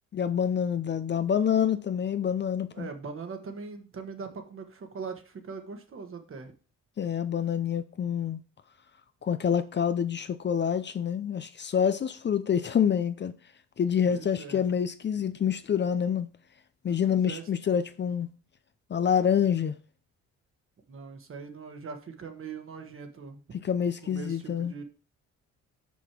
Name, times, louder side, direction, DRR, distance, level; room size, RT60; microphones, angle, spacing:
voice 1, 0.1-2.9 7.0-8.4 9.2-13.3 13.8-16.3 16.8-18.3 18.9-19.7 23.6-24.7, left 8 dB, 35° left, 0.5 m, -27 dB
voice 2, 2.7-6.5 14.1-14.6 17.0-17.5 20.9-23.6 24.0-24.8, right 5 dB, 45° right, 1.4 m, -41 dB
6.2 x 5.4 x 4.4 m
cardioid pair, 90°, 30 cm